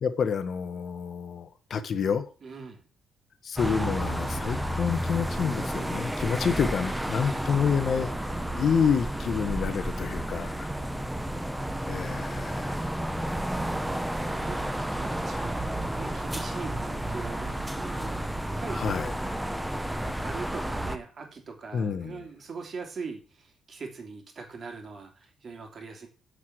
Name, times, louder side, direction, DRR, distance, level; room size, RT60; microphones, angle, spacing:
voice 1, 0.0-2.3 3.4-8.1 8.6-10.7 11.9-12.8 18.7-19.4 21.7-22.2, left 6 dB, 45° left, 11 dB, 1.0 m, -28 dB
voice 2, 2.4-2.8 6.3-7.7 10.5-10.8 13.6-18.8 20.2-26.1, right 4 dB, 40° right, 3 dB, 2.8 m, -42 dB
sound 1, 3.6-21.0, right 1 dB, 5° right, 0.7 m, -31 dB
9.8 x 4.7 x 7.8 m, 0.35 s
cardioid pair, 160°, 0 cm